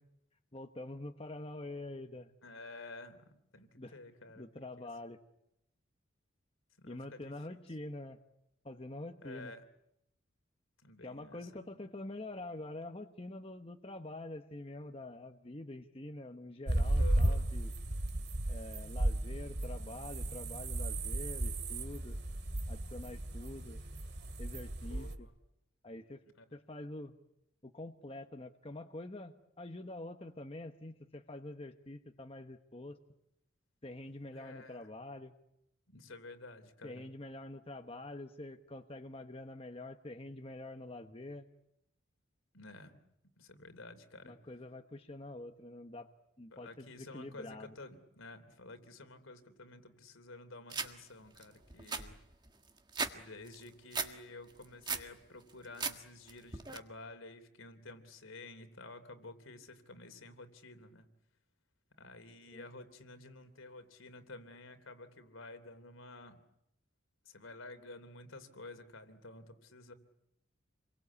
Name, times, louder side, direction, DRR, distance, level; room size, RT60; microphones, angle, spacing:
voice 1, 0.5-2.3 3.8-4.0 4.4-5.2 6.8-8.2 8.6-9.5 11.0-17.7 18.5-22.2 22.7-23.8 24.4-25.3 25.8-26.2 26.5-27.2 27.6-33.0 33.8-35.3 36.8-41.5 44.2-46.1 46.4-47.7 62.5-62.7, left 2 dB, 25° left, 6 dB, 1.1 m, -46 dB
voice 2, 2.4-4.4 4.8-4.9 6.8-7.3 9.2-9.6 10.8-11.5 17.0-17.5 24.8-25.3 26.4-26.5 34.3-34.9 35.9-37.0 42.5-43.0 43.4-44.3 46.5-52.2 53.1-61.1 62.0-66.4 67.3-69.9, left 2 dB, 80° left, 9 dB, 3.1 m, -51 dB
sound 1, 16.7-25.2, right 1 dB, 50° right, 2.4 m, -34 dB
sound 2, 50.7-50.9 51.4-51.5 51.7-53.1 53.5-54.1 54.5-55.1 55.5-56.0 56.3-56.8, right 5 dB, 20° right, 1.6 m, -37 dB
28.5 x 23.0 x 8.4 m, 0.81 s
head